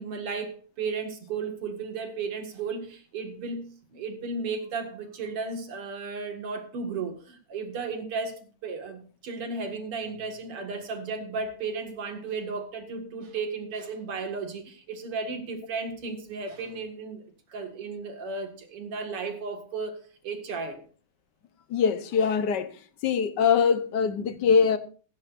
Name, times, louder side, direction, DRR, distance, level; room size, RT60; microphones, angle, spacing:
voice 1, 0.0-17.2 17.5-20.0 20.2-20.8, right 4 dB, 90° right, 2.9 m, -34 dB
voice 2, 21.7-22.7 23.0-24.8, left 6 dB, 60° left, 1.4 m, -23 dB
15.5 x 15.0 x 2.6 m
omnidirectional pair, 2.4 m